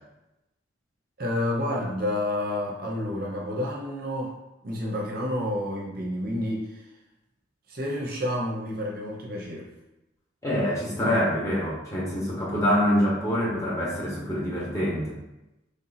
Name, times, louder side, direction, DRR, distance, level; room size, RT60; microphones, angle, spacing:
voice 1, 1.2-4.3 4.6-6.8 7.7-9.7, left 1 dB, 50° right, -2 dB, 0.7 m, -29 dB
voice 2, 10.4-15.2, equal, 15° left, -6 dB, 1.1 m, -25 dB
3.4 x 2.8 x 4.1 m, 0.95 s
head